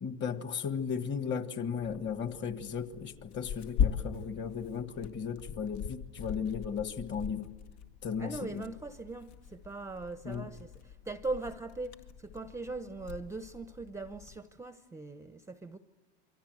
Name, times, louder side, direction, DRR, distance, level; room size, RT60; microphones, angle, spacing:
voice 1, 0.0-7.5 8.0-8.6 10.2-10.5, left 6 dB, 30° left, 1.7 m, -36 dB
Tearing, 1.8-14.4, left 8 dB, 70° left, 2.0 m, -40 dB
voice 2, 8.2-15.8, right 3 dB, 10° right, 0.8 m, -40 dB
28.5 x 23.5 x 7.9 m
supercardioid pair, 120°, 35 cm